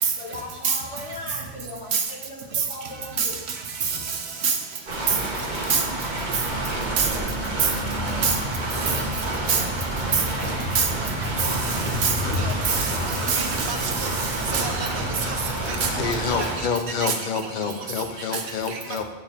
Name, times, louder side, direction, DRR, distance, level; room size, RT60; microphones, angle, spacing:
voice 1, 0.2-3.4, left 1 dB, 85° left, -4 dB, 2.3 m, -38 dB
sound 1, 4.9-16.6, right 1 dB, 40° right, 1.5 m, -29 dB
sound 2, 7.8-16.4, left 1 dB, 20° right, 1.8 m, -33 dB
voice 2, 12.4-14.1 14.5-14.9 15.8-16.5 17.0-17.1, right 6 dB, 70° right, 4 dB, 1.1 m, -24 dB
voice 3, 16.0-19.0, left 5 dB, 50° left, 6 dB, 0.8 m, -27 dB
7.5 x 7.1 x 3.5 m, 1.2 s
omnidirectional pair, 1.2 m